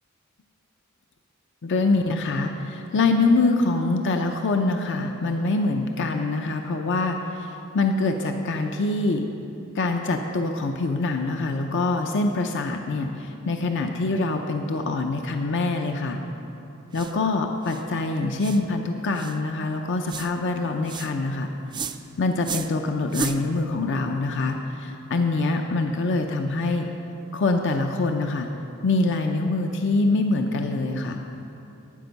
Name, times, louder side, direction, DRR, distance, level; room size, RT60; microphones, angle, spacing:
voice 1, 1.6-9.3 9.7-16.2 16.9-21.5 22.2-26.9 27.3-28.5 28.8-31.2, left 3 dB, 60° left, 4 dB, 0.6 m, -24 dB
sound 1, 16.9-17.2 17.6-17.8 18.4-18.6 19.1-19.4 20.1-20.3 20.8-21.1 21.7-22.0 22.4-22.7 23.1-23.4, right 5 dB, 20° right, 0.4 m, -33 dB
12.5 x 9.0 x 5.3 m, 2.8 s
head